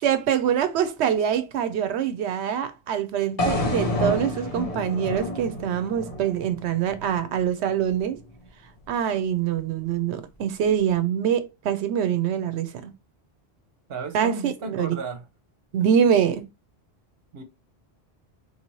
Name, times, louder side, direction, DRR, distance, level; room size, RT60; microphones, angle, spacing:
voice 1, 0.0-8.2 8.9-12.9 14.1-14.9 15.7-16.5, right 8 dB, 85° right, 0.9 m, -24 dB
sound 1, 3.4-7.5, left 1 dB, 40° left, 0.7 m, -29 dB
voice 2, 13.9-15.2 17.3-17.4, right 4 dB, 65° right, 1.0 m, -34 dB
4.3 x 2.7 x 3.0 m
omnidirectional pair, 1.1 m